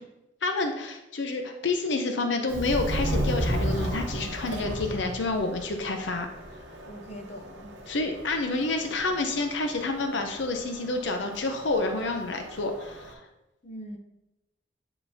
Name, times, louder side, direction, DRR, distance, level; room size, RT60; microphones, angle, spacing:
voice 1, 0.4-6.3 7.9-13.2, left 3 dB, 75° left, 4 dB, 0.6 m, -29 dB
Subway metro underground, 2.5-13.1, equal, 75° right, 0.9 m, -34 dB
voice 2, 6.9-7.8 13.6-14.0, equal, 35° left, 3 dB, 0.8 m, -41 dB
8.9 x 3.9 x 2.8 m, 0.92 s
head